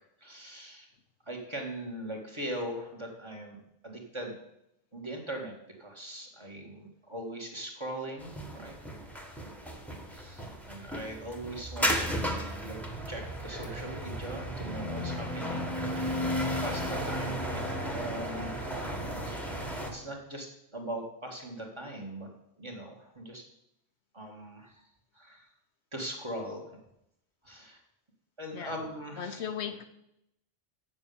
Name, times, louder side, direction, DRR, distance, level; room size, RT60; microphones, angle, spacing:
voice 1, 0.2-0.9 1.3-4.4 4.9-5.5 5.8-8.7 10.1-12.8 13.1-16.2 16.6-18.8 19.2-22.3 22.6-23.4 24.1-24.9 25.1-25.5 25.9-26.8 27.4-27.8 28.4-29.4, right 1 dB, 25° right, 1.9 m, -41 dB
sound 1, 8.2-19.9, equal, ahead, 1.4 m, -34 dB
voice 2, 29.2-29.8, left 8 dB, 75° left, 1.1 m, -36 dB
8.2 x 7.3 x 7.0 m
omnidirectional pair, 1.2 m